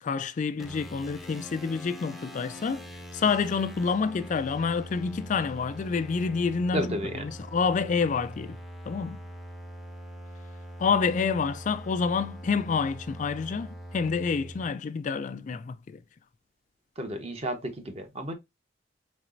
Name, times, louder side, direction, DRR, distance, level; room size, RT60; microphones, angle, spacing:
voice 1, 0.0-2.9 3.1-6.9 7.2-8.6 8.9-9.2 10.8-16.0, left 5 dB, 45° left, 0.3 m, -28 dB
sound 1, 0.6-14.7, equal, ahead, 0.7 m, -43 dB
voice 2, 6.7-7.3 17.0-18.3, equal, 35° right, 1.0 m, -32 dB
4.4 x 4.0 x 2.5 m
head